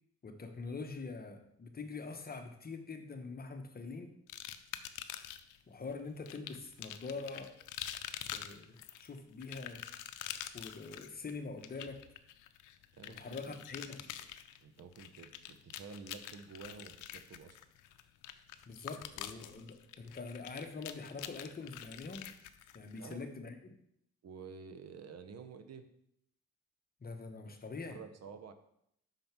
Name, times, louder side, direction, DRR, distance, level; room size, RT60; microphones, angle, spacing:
voice 1, 0.2-4.2 5.7-7.5 8.3-9.8 10.5-12.0 13.1-14.0 18.7-22.3 22.7-23.6 27.0-28.0, left 4 dB, 30° left, 6 dB, 1.0 m, -44 dB
sound 1, 4.3-5.6 6.3-23.1, left 11 dB, 90° left, 0.6 m, -46 dB
voice 2, 13.0-13.6 14.6-17.6 23.0-23.2 24.2-25.9 27.9-28.5, right 5 dB, 55° right, 9 dB, 0.9 m, -50 dB
5.8 x 5.2 x 5.9 m, 0.74 s
cardioid pair, 90°, 30 cm